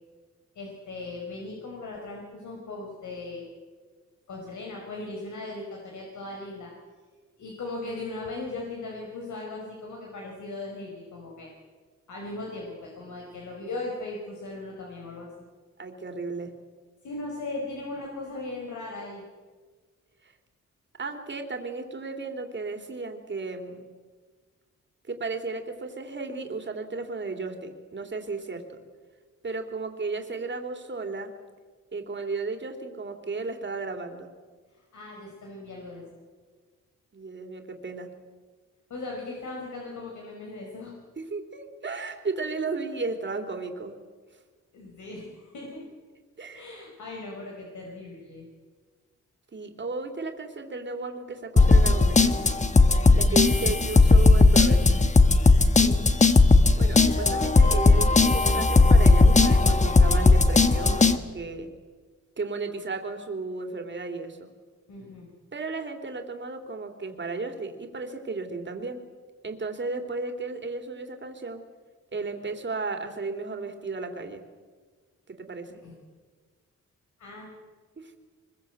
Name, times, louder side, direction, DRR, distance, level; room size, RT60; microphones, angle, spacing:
voice 1, 0.5-3.5 4.3-6.7 7.4-11.5 12.1-15.3 17.0-19.2 34.9-36.0 38.9-40.9 44.7-45.8 46.5-48.5 55.8-56.0 64.9-65.3 75.7-75.9 77.2-77.5, left 2 dB, 80° left, -1 dB, 5.0 m, -38 dB
voice 2, 15.8-16.5 20.2-20.3 21.0-23.8 25.1-28.6 29.4-31.3 31.9-34.3 37.1-38.1 41.2-43.9 46.4-46.6 49.5-52.4 53.1-55.1 56.8-61.7 62.4-64.5 65.5-69.0 69.4-71.6 72.1-74.4 75.3-75.7 78.0-78.1, right 3 dB, 40° right, 5 dB, 3.2 m, -34 dB
sound 1, 51.6-61.2, left 3 dB, 25° left, 1.3 m, -17 dB
24.0 x 21.5 x 8.1 m, 1.5 s
wide cardioid pair, 115°, 29 cm